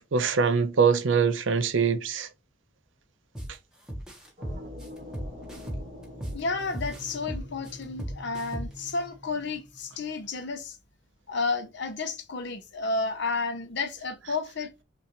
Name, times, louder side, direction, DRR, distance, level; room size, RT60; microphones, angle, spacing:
voice 1, 0.0-2.3, right 5 dB, 80° right, 0.6 m, -23 dB
sound 1, 3.3-3.5 3.9-6.4 6.7-8.9, equal, 5° right, 1.1 m, -35 dB
sound 2, 4.4-10.2, left 1 dB, 40° right, 1.5 m, -45 dB
voice 2, 6.3-10.8 11.3-14.7, left 3 dB, 65° left, 0.7 m, -31 dB
5.8 x 2.5 x 3.0 m
head